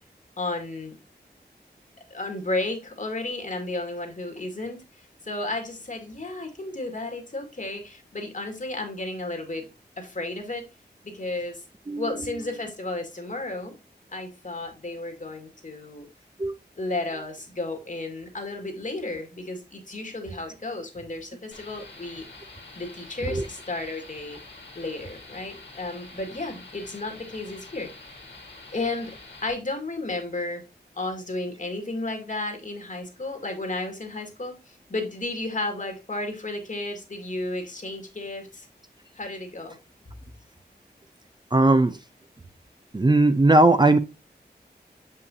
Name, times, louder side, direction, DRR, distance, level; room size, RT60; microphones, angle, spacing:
voice 1, 0.4-1.0 2.1-9.7 10.0-10.7 11.0-11.6 12.0-13.7 14.1-16.1 16.8-22.2 22.8-24.4 24.8-27.9 28.7-29.2 29.4-30.6 30.9-38.7 39.2-39.8, left 2 dB, 50° left, 1.9 m, -33 dB
sound 1, 21.5-29.5, left 3 dB, 90° left, 2.1 m, -46 dB
voice 2, 41.5-42.0 42.9-44.0, right 2 dB, 25° right, 0.5 m, -18 dB
6.9 x 5.5 x 2.7 m
wide cardioid pair, 80°, 17 cm